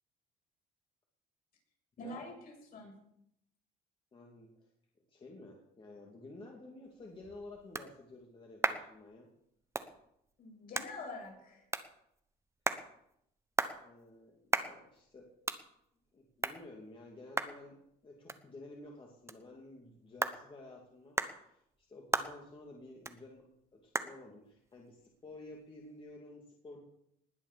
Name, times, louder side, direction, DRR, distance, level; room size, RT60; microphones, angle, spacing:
voice 1, 2.0-3.0 10.4-11.6, left 2 dB, 60° left, -1 dB, 7.8 m, -46 dB
voice 2, 4.1-4.7 5.1-9.3 13.7-15.3 16.1-23.5 23.7-26.8, left 2 dB, 30° left, -1 dB, 2.8 m, -52 dB
sound 1, 6.9-26.2, right 3 dB, 15° right, 1.1 m, -41 dB
20.0 x 7.5 x 7.0 m, 0.75 s
cardioid pair, 110°, 17 cm